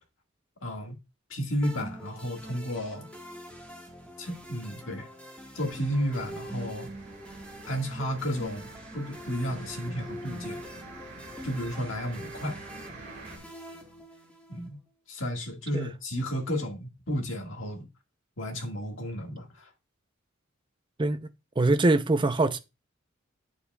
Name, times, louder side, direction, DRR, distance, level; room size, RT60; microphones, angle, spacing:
voice 1, 0.6-0.9 1.3-3.1 4.2-5.1 5.6-6.9 7.7-10.6 11.4-12.6 14.5-14.8 15.1-17.9 18.4-19.7, equal, 70° left, 1.7 m, -32 dB
sound 1, 1.6-14.7, equal, 5° left, 1.6 m, -44 dB
sound 2, 5.6-13.4, right 3 dB, 45° right, 3.3 m, -47 dB
voice 2, 21.6-22.6, right 2 dB, 25° right, 0.5 m, -23 dB
8.7 x 7.0 x 2.3 m
head